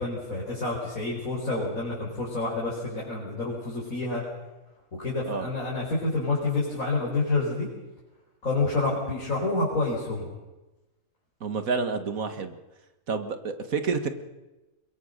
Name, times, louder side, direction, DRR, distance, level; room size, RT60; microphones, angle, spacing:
voice 1, 0.0-4.2 5.0-7.7 8.4-10.3, left 3 dB, 70° left, -4 dB, 5.2 m, -28 dB
voice 2, 11.4-12.6 13.1-14.1, right 4 dB, 70° right, 9 dB, 2.1 m, -29 dB
22.5 x 22.5 x 6.7 m, 1.1 s
omnidirectional pair, 1.5 m